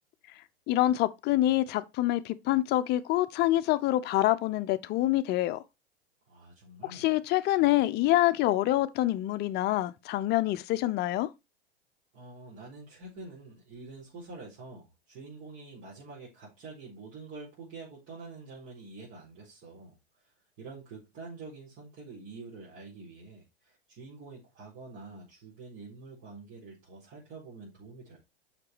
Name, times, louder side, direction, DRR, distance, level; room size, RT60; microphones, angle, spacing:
voice 1, 0.7-5.6 6.9-11.3, left 15 dB, 35° left, 0.7 m, -26 dB
voice 2, 6.3-7.1 12.1-20.0 20.6-28.2, right 3 dB, 40° right, 4.5 m, -47 dB
6.8 x 6.0 x 4.6 m
hypercardioid pair, 100°, 31 cm